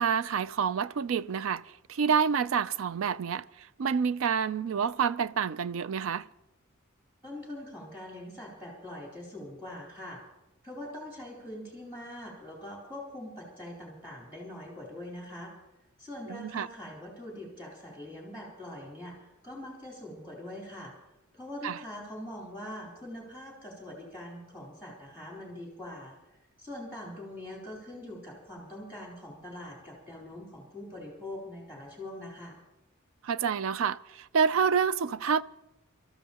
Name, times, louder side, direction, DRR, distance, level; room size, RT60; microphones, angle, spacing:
voice 1, 0.0-3.4 3.8-6.3 16.3-16.7 21.6-21.8 33.2-35.4, right 6 dB, 65° right, 0.4 m, -28 dB
voice 2, 7.2-10.2 10.6-15.5 16.0-20.9 21.3-26.2 26.6-32.6, left 1 dB, 10° right, 3.5 m, -43 dB
27.0 x 13.5 x 2.9 m
head